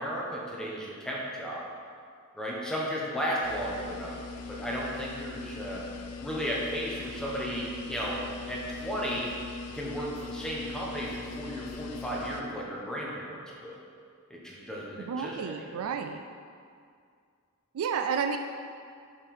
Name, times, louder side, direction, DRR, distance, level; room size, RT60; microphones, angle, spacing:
voice 1, 0.0-1.7 2.3-5.8 6.2-9.3 9.7-13.7 14.3-15.9, equal, 5° left, -5 dB, 1.2 m, -34 dB
sound 1, 3.4-12.4, left 4 dB, 90° left, 0.5 m, -41 dB
voice 2, 15.1-16.2 17.7-18.4, right 6 dB, 65° right, 6 dB, 0.3 m, -31 dB
5.5 x 5.1 x 5.4 m, 2.2 s
head